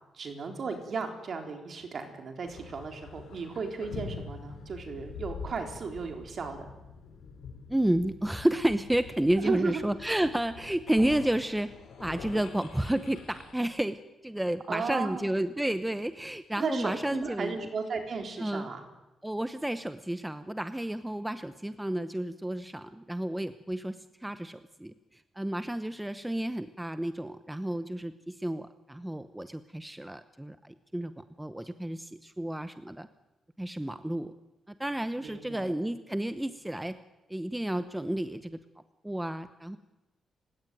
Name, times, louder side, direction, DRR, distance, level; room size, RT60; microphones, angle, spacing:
voice 1, 0.1-6.7 9.4-9.8 14.7-15.3 16.6-18.8 35.2-35.7, right 4 dB, 50° right, 5 dB, 4.0 m, -35 dB
sound 1, 2.4-13.5, left 5 dB, 90° left, 5.6 m, -45 dB
voice 2, 7.7-11.7 12.0-17.6 18.4-18.7 19.2-33.1 33.6-34.3 34.8-37.0 37.3-38.6 39.0-39.8, right 1 dB, 5° right, 11 dB, 0.8 m, -31 dB
30.0 x 17.0 x 9.3 m, 1.0 s
wide cardioid pair, 140°, 0 cm